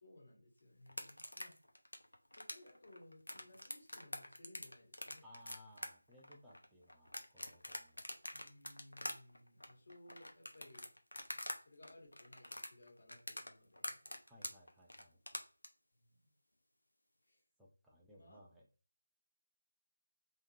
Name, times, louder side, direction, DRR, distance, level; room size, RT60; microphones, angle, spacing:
voice 1, 0.0-1.5 2.4-5.2 8.3-10.9 11.5-14.0 15.9-16.3 17.2-17.4 18.1-18.4, left 1 dB, 45° left, -1 dB, 1.4 m, -61 dB
sound 1, 0.9-11.6 11.8-15.7, left 1 dB, 65° left, 0.6 m, -45 dB
voice 2, 5.2-8.0 14.3-15.2 17.6-18.6, left 1 dB, ahead, -6 dB, 0.4 m, -61 dB
3.5 x 2.8 x 2.5 m, 0.36 s
figure-of-eight pair, 160°, 0 cm